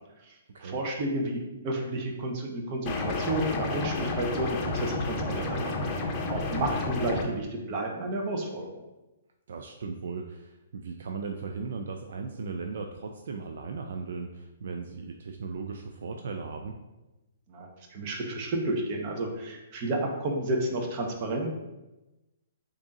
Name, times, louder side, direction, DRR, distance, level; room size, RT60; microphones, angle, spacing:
voice 1, 0.3-5.7 6.0-8.8 17.5-21.5, right 1 dB, 40° right, 2 dB, 0.8 m, -31 dB
sound 1, 2.9-7.2, left 3 dB, 30° left, 0.6 m, -31 dB
voice 2, 5.2-6.0 9.5-16.8, right 4 dB, 70° right, 4 dB, 0.3 m, -37 dB
3.5 x 2.6 x 4.0 m, 1.0 s
hypercardioid pair, 140°, 0 cm